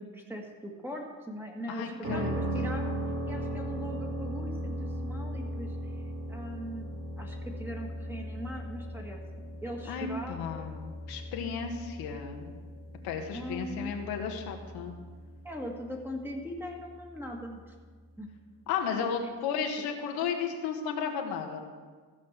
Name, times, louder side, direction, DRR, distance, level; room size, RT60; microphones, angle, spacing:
voice 1, 0.0-5.9 6.3-10.7 13.3-14.0 15.4-17.7 18.2-18.3 19.2-19.3, equal, 5° right, 0 dB, 1.8 m, -41 dB
voice 2, 1.7-2.3 9.9-12.5 13.0-14.9 18.7-21.6, left 6 dB, 85° left, 3 dB, 1.6 m, -34 dB
sound 1, 2.0-17.9, equal, 40° right, 2.9 m, -38 dB
15.0 x 5.2 x 7.3 m, 1.5 s
cardioid pair, 115°, 36 cm